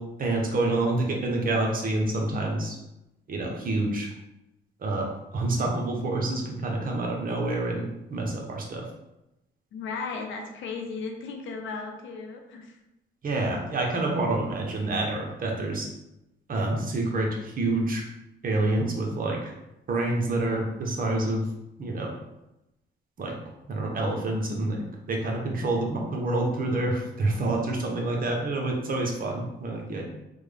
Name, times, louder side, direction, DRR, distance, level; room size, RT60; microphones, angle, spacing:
voice 1, 0.0-2.8 3.3-4.1 4.8-8.8 13.2-15.9 16.5-18.0 18.4-19.5 19.9-21.5 21.8-22.1 23.2-23.4 23.7-30.1, right 2 dB, 45° right, 0 dB, 0.8 m, -27 dB
voice 2, 9.7-12.8, left 4 dB, 75° left, 3 dB, 0.6 m, -35 dB
3.3 x 2.2 x 3.3 m, 0.91 s
cardioid pair, 90°, 20 cm